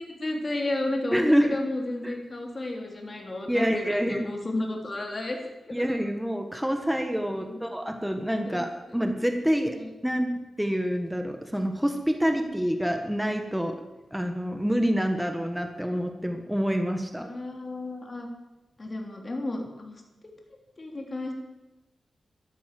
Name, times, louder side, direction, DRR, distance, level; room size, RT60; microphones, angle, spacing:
voice 1, 0.1-5.4 5.7-6.0 7.3-7.6 8.5-8.6 9.7-9.9 17.2-18.3 18.8-20.0 20.8-21.3, left 2 dB, 35° left, 2 dB, 3.5 m, -32 dB
voice 2, 1.1-1.6 2.0-2.1 3.5-4.2 5.7-9.8 10.0-13.7 14.1-17.3, equal, 5° right, 5 dB, 1.5 m, -27 dB
14.0 x 11.5 x 7.8 m, 1.0 s
wide cardioid pair, 90°, 0 cm